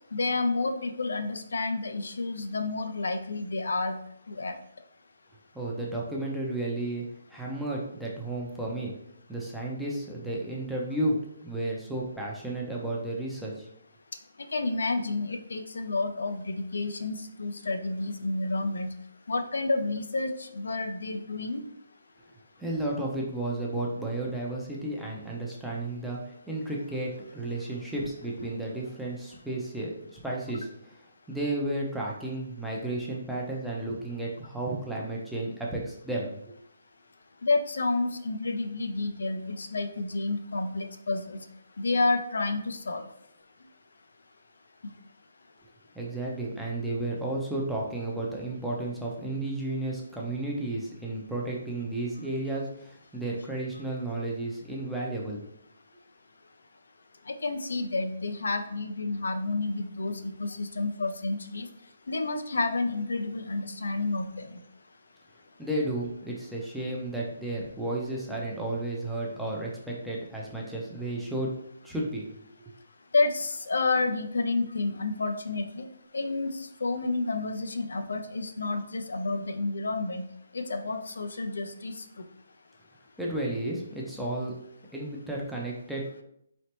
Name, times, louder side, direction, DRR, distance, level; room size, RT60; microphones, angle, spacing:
voice 1, 0.1-4.0 4.3-4.5 14.5-18.9 19.3-21.6 37.4-41.4 41.8-43.0 57.4-61.7 62.1-64.5 73.1-75.8 76.1-76.5 76.8-80.3 80.5-81.9, left 3 dB, 85° left, 7 dB, 0.5 m, -30 dB
voice 2, 5.5-8.9 9.3-13.7 22.6-26.2 26.5-30.9 31.3-36.4 45.9-55.4 65.6-71.5 71.8-72.4 83.2-84.5 84.9-86.0, right 1 dB, ahead, -4 dB, 0.6 m, -33 dB
3.9 x 3.2 x 2.9 m, 0.72 s
hypercardioid pair, 165°, 0 cm